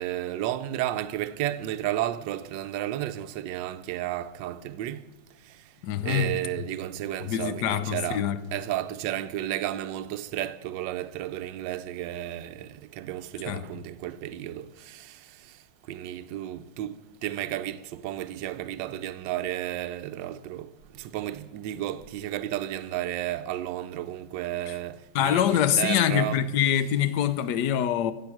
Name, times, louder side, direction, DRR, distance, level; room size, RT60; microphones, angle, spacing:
voice 1, 0.0-5.0 6.0-8.2 8.5-12.7 13.0-15.1 15.9-16.9 17.2-20.7 21.0-26.4, right 13 dB, 75° right, 1.2 m, -32 dB
voice 2, 5.8-6.4 7.2-8.4 13.5-13.6 24.7-24.8 25.1-28.1, left 10 dB, 70° left, 1.0 m, -25 dB
15.5 x 7.9 x 5.9 m
omnidirectional pair, 2.1 m